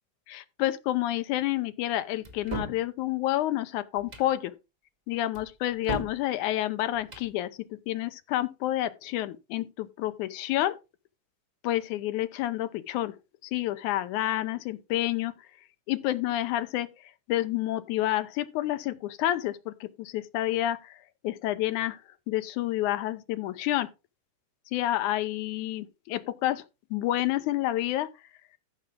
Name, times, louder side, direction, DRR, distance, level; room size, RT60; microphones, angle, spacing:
voice 1, 0.3-4.5 5.1-10.8 11.6-13.2 13.5-15.3 15.9-16.9 17.3-21.0 21.2-22.0 22.3-23.9 24.7-26.6 26.9-28.1, left 14 dB, 75° left, 2.1 m, -29 dB
sound 1, 2.2-2.8 4.0-4.3 5.3-6.2 7.0-7.3, right 1 dB, 30° right, 0.7 m, -36 dB
14.0 x 5.7 x 3.7 m
omnidirectional pair, 3.7 m